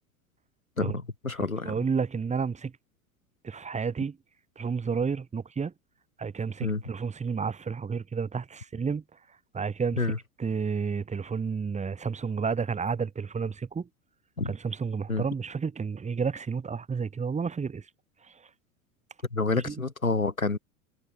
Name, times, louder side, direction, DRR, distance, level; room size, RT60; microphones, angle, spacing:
voice 1, 0.8-1.7 6.6-6.8 10.0-10.2 14.4-14.5 15.1-15.2 19.3-20.6, left 3 dB, 85° left, 6.7 m, -28 dB
voice 2, 1.7-2.7 3.4-4.2 4.6-5.7 6.2-9.0 9.5-10.1 10.4-13.9 14.5-17.8 19.7-19.8, right 5 dB, 15° right, 5.7 m, -31 dB
figure-of-eight pair, 85°, 41 cm